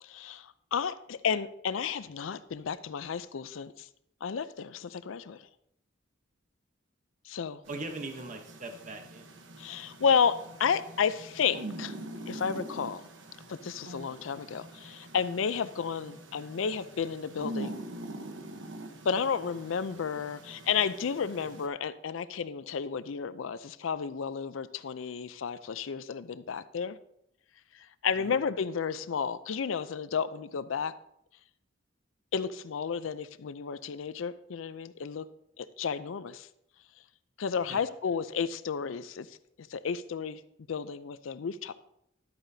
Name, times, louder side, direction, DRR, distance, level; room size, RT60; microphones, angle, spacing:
voice 1, 0.0-3.9 4.2-5.5 7.3-7.6 9.6-12.0 12.3-13.0 13.5-17.8 19.0-27.0 27.7-30.9 32.3-35.3 35.6-36.5 37.4-40.4 40.7-41.7, left 6 dB, 85° left, 15 dB, 0.5 m, -32 dB
voice 2, 7.7-9.3 28.2-28.4 37.7-37.8, right 2 dB, 40° right, 5 dB, 0.9 m, -40 dB
sound 1, 7.7-21.7, right 1 dB, 70° right, 1.0 m, -44 dB
12.0 x 8.9 x 2.7 m, 0.77 s
head